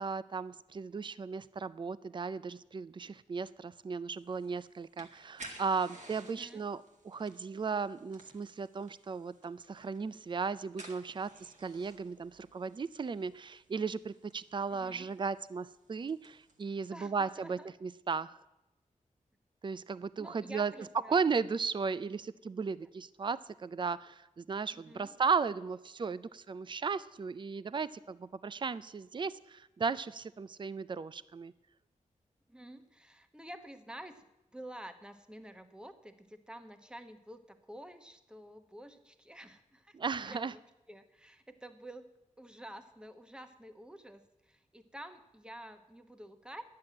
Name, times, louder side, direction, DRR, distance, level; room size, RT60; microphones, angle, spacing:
voice 1, 0.0-18.4 19.6-20.7 21.1-31.5 39.9-40.5, right 5 dB, 40° right, 17 dB, 0.4 m, -36 dB
sound 1, 4.1-16.6, right 2 dB, 65° right, 2.1 m, -56 dB
voice 2, 6.3-6.7 14.7-15.1 16.9-17.7 20.2-21.3 22.8-22.9 24.7-25.2 32.5-34.2 34.5-40.0 40.2-40.6 40.9-42.1 42.4-46.6, right 1 dB, 5° right, 8 dB, 1.0 m, -50 dB
10.5 x 7.6 x 8.9 m, 0.93 s
wide cardioid pair, 100°, 13 cm